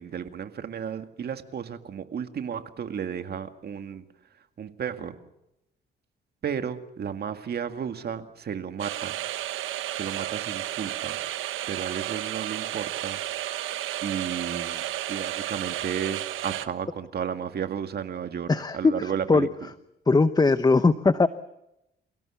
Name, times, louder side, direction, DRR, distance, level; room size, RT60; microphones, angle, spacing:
voice 1, 0.0-4.0 4.6-5.2 6.4-9.1 9.9-11.2 11.7-13.2 14.0-14.8 15.1-19.5, right 8 dB, 55° right, 8 dB, 2.1 m, -33 dB
sound 1, 8.8-16.7, right 13 dB, 85° right, 1.2 m, -32 dB
voice 2, 18.5-19.5 20.1-21.3, left 3 dB, 20° left, 13 dB, 0.8 m, -20 dB
29.0 x 17.0 x 7.2 m, 0.88 s
cardioid pair, 90°, 20 cm